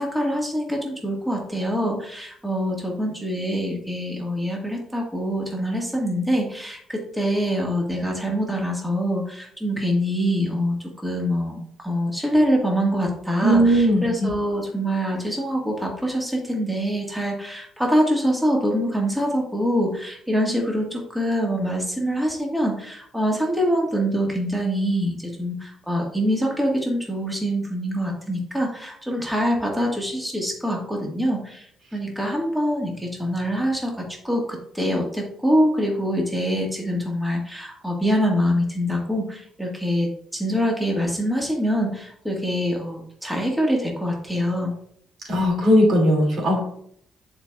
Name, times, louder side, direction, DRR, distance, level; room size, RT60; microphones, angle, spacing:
voice 1, 0.0-44.7, equal, 5° right, -1 dB, 1.7 m, -24 dB
voice 2, 13.4-14.3 45.3-46.6, equal, 60° right, 0 dB, 2.5 m, -18 dB
9.9 x 4.6 x 2.4 m, 0.66 s
cardioid pair, 90°, 0 cm